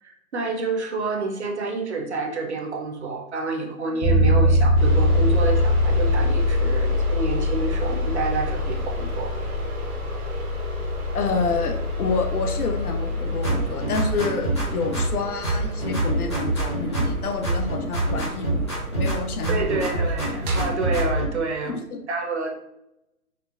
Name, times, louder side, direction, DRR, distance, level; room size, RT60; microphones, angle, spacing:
voice 1, 0.0-9.3 19.5-21.7 22.1-22.6, right 3 dB, 50° right, 3 dB, 0.6 m, -28 dB
Bass guitar, 4.0-13.9, left 1 dB, 45° left, 1.0 m, -23 dB
sound 1, 4.8-20.7, right 2 dB, 85° right, 0.9 m, -35 dB
voice 2, 11.1-18.6 18.9-20.0 21.6-22.0, left 4 dB, 85° left, 5 dB, 0.8 m, -28 dB
sound 2, 13.4-15.2 15.4-17.2 17.4-19.2 19.4-21.3, right 1 dB, 20° left, 0.6 m, -25 dB
4.4 x 2.0 x 2.5 m, 0.83 s
hypercardioid pair, 170°, 43 cm